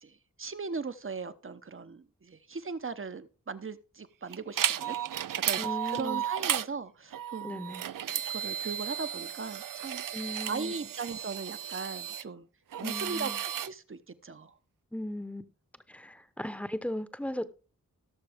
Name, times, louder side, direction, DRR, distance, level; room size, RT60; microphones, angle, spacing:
voice 1, 0.0-5.0 5.4-7.6 8.0-12.5 12.8-13.3 13.7-14.5, right 4 dB, 40° right, 0.9 m, -39 dB
sound 1, 4.3-6.7 7.1-12.2 12.7-13.7, right 10 dB, 75° right, 0.5 m, -34 dB
voice 2, 5.6-6.2 7.4-7.8 10.1-10.7 12.8-13.4 14.9-15.4 15.9-17.4, left 1 dB, 5° left, 1.0 m, -37 dB
17.5 x 6.7 x 3.6 m
wide cardioid pair, 65°, 33 cm